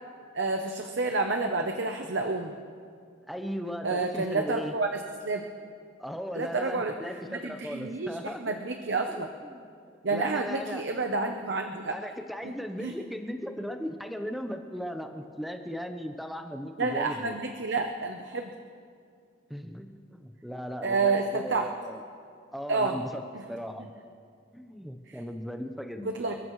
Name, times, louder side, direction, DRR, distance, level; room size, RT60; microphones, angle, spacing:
voice 1, 0.3-2.5 3.8-5.4 6.3-6.9 7.3-9.3 10.0-11.9 12.4-12.5 12.8-12.9 16.8-18.5 20.8-21.7 22.7-23.0 23.3-23.4 25.1-25.2 26.0-26.4, right 3 dB, 60° right, 4 dB, 0.9 m, -29 dB
voice 2, 3.3-4.7 6.0-8.4 9.1-9.7 10.1-10.8 11.9-17.4 19.5-22.0 22.5-23.2 23.5-23.9 24.5-26.1, equal, ahead, 5 dB, 0.8 m, -37 dB
29.0 x 14.5 x 3.2 m, 2.3 s
head